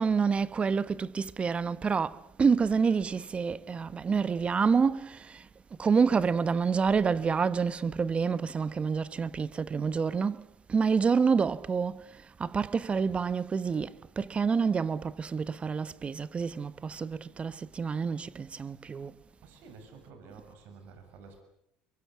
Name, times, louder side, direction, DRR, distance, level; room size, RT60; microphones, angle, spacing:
voice 1, 0.0-19.2, right 5 dB, 30° right, 1.1 m, -28 dB
voice 2, 19.4-21.4, right 5 dB, 70° right, 6.9 m, -51 dB
24.0 x 23.5 x 8.4 m
supercardioid pair, 80°, 4 cm